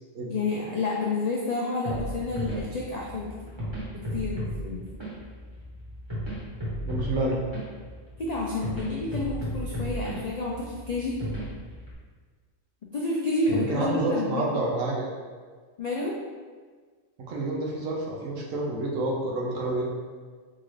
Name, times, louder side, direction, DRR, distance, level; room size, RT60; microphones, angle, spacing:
voice 1, 0.3-3.3 4.1-4.8 8.2-11.2 12.9-14.5 15.8-16.2, left 3 dB, 80° left, -3 dB, 0.3 m, -29 dB
sound 1, 1.8-11.9, equal, 25° right, 1.0 m, -35 dB
voice 2, 6.8-7.4 13.5-15.1 17.3-19.8, right 2 dB, 85° right, -2 dB, 1.1 m, -28 dB
3.8 x 2.5 x 3.1 m, 1.5 s
omnidirectional pair, 1.3 m